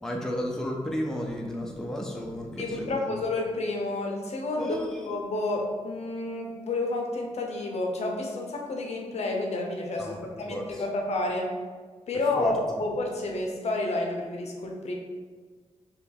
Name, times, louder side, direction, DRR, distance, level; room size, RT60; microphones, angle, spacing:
voice 1, 0.0-3.1 4.6-5.0 10.0-10.2 10.4-10.6 12.4-12.5, equal, 5° left, 0 dB, 0.4 m, -32 dB
voice 2, 2.6-11.6 12.1-14.9, left 2 dB, 65° left, 1 dB, 0.6 m, -30 dB
5.5 x 2.2 x 3.4 m, 1.5 s
wide cardioid pair, 155°, 12 cm